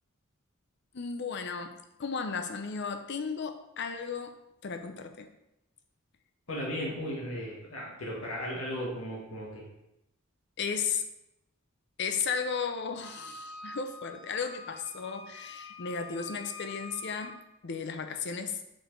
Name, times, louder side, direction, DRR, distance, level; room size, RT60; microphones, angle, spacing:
voice 1, 0.9-5.3 10.6-11.0 12.0-18.6, left 6 dB, 55° left, 7 dB, 0.6 m, -35 dB
voice 2, 6.5-9.6, equal, 90° left, -4 dB, 1.6 m, -36 dB
Wind instrument woodwind instrument, 13.0-17.3, left 3 dB, 5° left, 2.0 m, -46 dB
5.1 x 4.6 x 4.5 m, 0.87 s
head